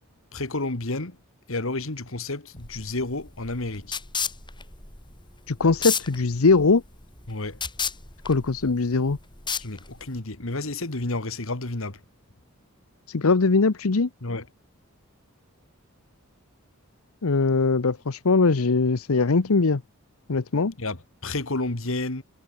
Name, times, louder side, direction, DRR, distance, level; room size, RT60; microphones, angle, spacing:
voice 1, 0.3-1.2 1.5-4.0 7.3-7.6 9.6-12.0 14.2-14.5 20.8-22.2, left 2 dB, 65° left, 2.1 m, -31 dB
sound 1, 2.6-10.2, left 6 dB, 20° left, 4.8 m, -33 dB
voice 2, 5.5-6.8 8.2-9.2 13.1-14.1 17.2-19.8 20.3-20.7, left 4 dB, 85° left, 0.8 m, -21 dB
head